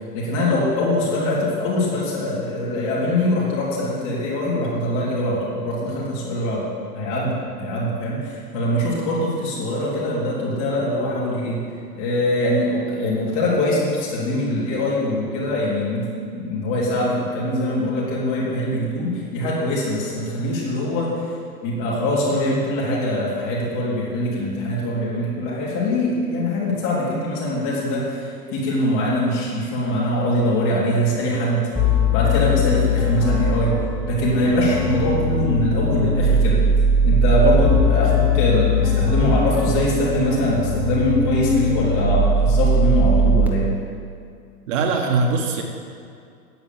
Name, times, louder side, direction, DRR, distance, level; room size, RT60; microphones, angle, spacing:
voice 1, 0.1-6.7 6.9-11.6 11.9-16.1 16.3-21.1 21.6-31.6 32.1-33.7 34.1-36.6 37.0-43.6, left 1 dB, 45° left, -6 dB, 3.7 m, -22 dB
sound 1, 31.8-43.5, left 1 dB, 5° right, 1.1 m, -20 dB
voice 2, 44.7-45.6, right 4 dB, 50° right, 2 dB, 1.7 m, -21 dB
9.6 x 9.0 x 7.6 m, 2.3 s
figure-of-eight pair, 105°, 48 cm